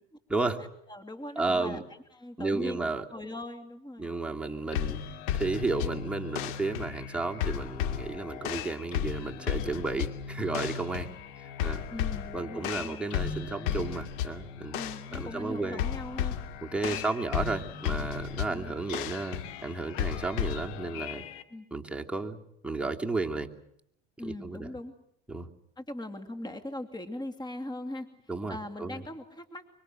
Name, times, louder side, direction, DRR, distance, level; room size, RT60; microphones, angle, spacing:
voice 1, 0.6-1.9 2.1-2.8 3.1-4.1 11.9-13.1 14.7-16.3 16.9-17.1 18.5-18.7 21.5-21.7 24.2-24.9 25.8-28.1 28.5-29.7, left 1 dB, 15° left, 9 dB, 2.7 m, -40 dB
voice 2, 1.4-1.8 2.4-3.0 4.0-5.0 5.3-11.1 11.4-11.8 12.3-14.8 15.1-15.8 16.7-21.2 21.7-23.5 24.2-24.7 25.3-25.5 28.3-29.0, right 3 dB, 5° right, 2 dB, 2.9 m, -33 dB
sound 1, 4.7-21.4, left 9 dB, 75° left, 2.6 m, -34 dB
25.0 x 24.5 x 7.8 m, 0.74 s
supercardioid pair, 95°, 32 cm